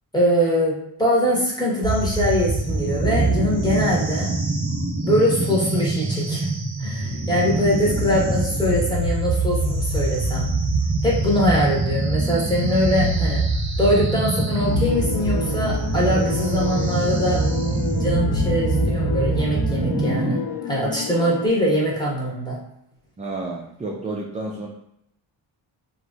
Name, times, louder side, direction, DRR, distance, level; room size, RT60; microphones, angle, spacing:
voice 1, 0.1-4.3 5.0-6.5 6.8-10.5 11.0-13.4 13.8-17.4 18.0-22.6, equal, 10° left, -5 dB, 1.1 m, -22 dB
sound 1, 1.8-20.4, right 2 dB, 35° right, 0.9 m, -24 dB
sound 2, 14.5-21.5, left 6 dB, 75° left, 0.6 m, -31 dB
voice 2, 23.2-24.7, right 2 dB, 20° right, -1 dB, 0.3 m, -30 dB
3.1 x 2.6 x 2.4 m, 0.78 s
cardioid pair, 70°, 47 cm